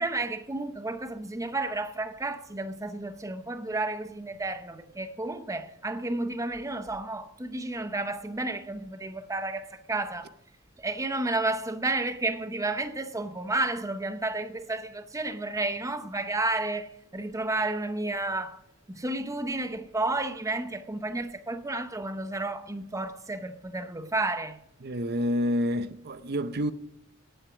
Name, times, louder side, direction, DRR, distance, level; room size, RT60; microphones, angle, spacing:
voice 1, 0.0-10.3 10.8-18.6 18.9-24.6, right 2 dB, 15° right, 0.7 m, -31 dB
voice 2, 24.8-26.7, equal, 50° right, 0.7 m, -28 dB
18.0 x 7.9 x 6.1 m
head